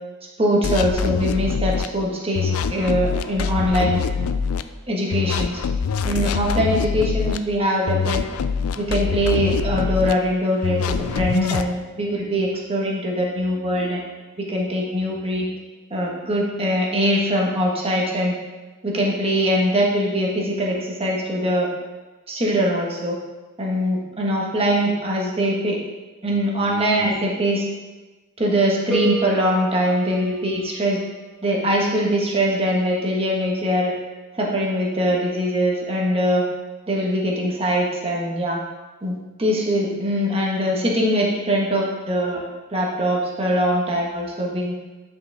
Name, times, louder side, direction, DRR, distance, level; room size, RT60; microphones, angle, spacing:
voice 1, 0.4-4.0 4.9-5.6 6.0-8.2 8.8-14.0 14.4-15.4 15.9-18.3 18.8-21.7 22.3-23.2 23.6-25.8 26.2-27.6 28.4-31.0 31.4-33.9 34.3-36.4 36.9-38.6 39.0-42.4 42.7-44.7, equal, 25° right, -3 dB, 1.4 m, -22 dB
sound 1, 0.6-1.9 2.3-4.6 5.1-7.4 7.9-10.1 10.6-11.7, left 6 dB, 75° left, 0.4 m, -24 dB
sound 2, 28.9-31.0, left 1 dB, 5° left, 0.8 m, -30 dB
9.5 x 5.2 x 3.5 m, 1.2 s
head